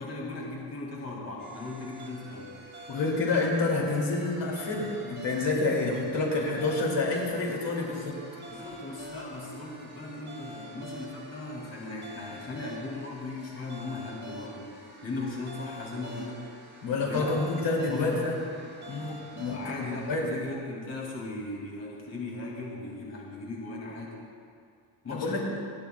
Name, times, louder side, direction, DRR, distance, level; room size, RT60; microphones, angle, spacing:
voice 1, 0.0-2.6 8.5-16.4 17.0-17.4 17.8-18.3 19.5-24.2 25.0-25.4, left 2 dB, 30° left, -4 dB, 2.5 m, -38 dB
sound 1, 1.4-20.2, right 1 dB, 20° right, 2.3 m, -46 dB
voice 2, 2.9-8.2 16.8-18.4 18.9-20.3 25.1-25.4, left 3 dB, 60° left, -2 dB, 2.6 m, -28 dB
29.0 x 10.0 x 2.3 m, 2.3 s
cardioid pair, 150°, 48 cm